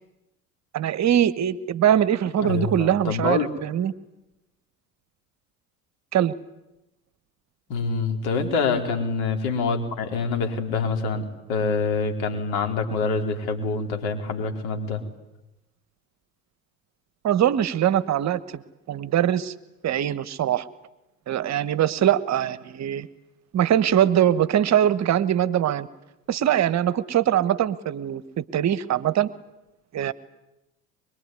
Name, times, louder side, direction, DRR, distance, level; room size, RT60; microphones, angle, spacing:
voice 1, 0.7-3.9 6.1-6.3 17.2-19.5 19.8-20.7 21.3-23.1 23.5-25.9 26.3-29.3 29.9-30.1, right 10 dB, 40° right, 15 dB, 1.2 m, -22 dB
voice 2, 2.4-3.5 7.7-15.0, left 4 dB, 60° left, 5 dB, 4.6 m, -26 dB
23.5 x 23.5 x 9.7 m, 0.95 s
hypercardioid pair, 70°, 42 cm